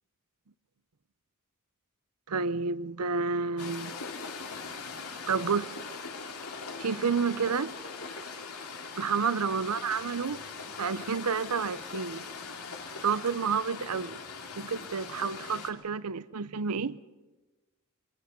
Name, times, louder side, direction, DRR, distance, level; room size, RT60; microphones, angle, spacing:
voice 1, 2.3-3.9 5.3-5.7 6.8-7.7 9.0-10.4 10.8-12.2 13.0-14.2 14.6-17.0, right 5 dB, 85° right, 0.7 m, -30 dB
sound 1, 3.6-15.7, left 4 dB, 85° left, 2.5 m, -41 dB
27.0 x 23.5 x 5.4 m
head